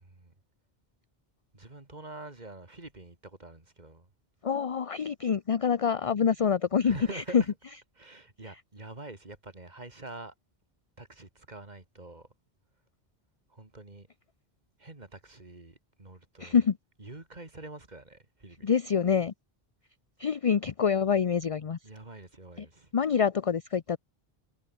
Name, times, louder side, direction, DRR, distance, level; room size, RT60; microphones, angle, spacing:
voice 1, 0.0-0.3 1.5-4.1 6.8-7.5 8.0-10.3 11.0-12.3 13.5-14.1 14.8-16.6 17.0-18.7 21.8-22.9, right 2 dB, 45° right, 2.9 m, -46 dB
voice 2, 4.4-7.4 16.4-16.8 18.6-19.3 20.2-21.8 22.6-22.7 22.9-24.0, left 7 dB, 40° left, 0.6 m, -26 dB
omnidirectional pair, 1.0 m